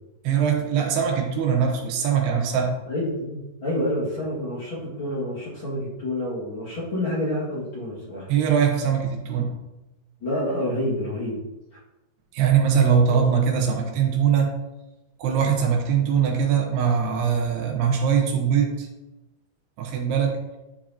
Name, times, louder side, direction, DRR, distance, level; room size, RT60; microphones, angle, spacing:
voice 1, 0.2-2.8 8.3-9.5 12.3-14.5 15.2-18.9 19.8-20.6, right 7 dB, 85° right, 1 dB, 3.1 m, -22 dB
voice 2, 2.9-8.3 10.2-11.4 13.1-13.2, left 1 dB, 40° left, -8 dB, 2.3 m, -28 dB
11.0 x 4.9 x 2.9 m, 0.98 s
omnidirectional pair, 4.6 m